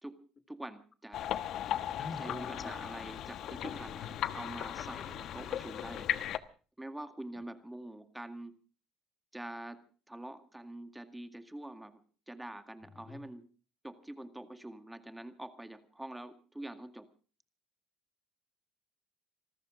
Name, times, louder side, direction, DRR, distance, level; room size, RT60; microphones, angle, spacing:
voice 1, 0.0-1.3 2.1-6.1 6.8-8.6 9.3-12.0 12.3-13.5 13.8-17.1, right 1 dB, 5° right, 9 dB, 2.0 m, -45 dB
sound 1, 1.1-6.4, left 11 dB, 60° left, 1.2 m, -37 dB
voice 2, 2.0-2.8 13.1-13.2, left 4 dB, 30° left, 9 dB, 1.9 m, -43 dB
26.5 x 14.0 x 3.7 m, 0.37 s
cardioid pair, 105°, 0 cm